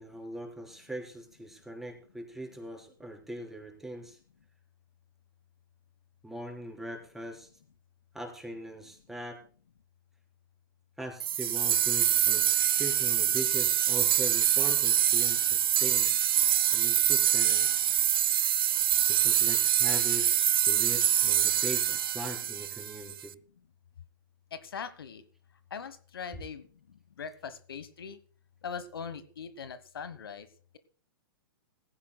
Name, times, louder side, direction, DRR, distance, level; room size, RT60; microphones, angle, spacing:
voice 1, 0.0-4.2 6.2-7.5 8.1-9.4 11.0-16.1 16.7-17.8 19.1-23.3, right 1 dB, 5° right, 1 dB, 4.1 m, -41 dB
sound 1, 11.2-23.2, right 10 dB, 75° right, 0.6 m, -25 dB
voice 2, 24.5-25.2 25.7-28.2 28.6-30.5, left 6 dB, 75° left, 13 dB, 1.2 m, -41 dB
18.0 x 16.0 x 2.3 m, 0.42 s
hypercardioid pair, 115°, 12 cm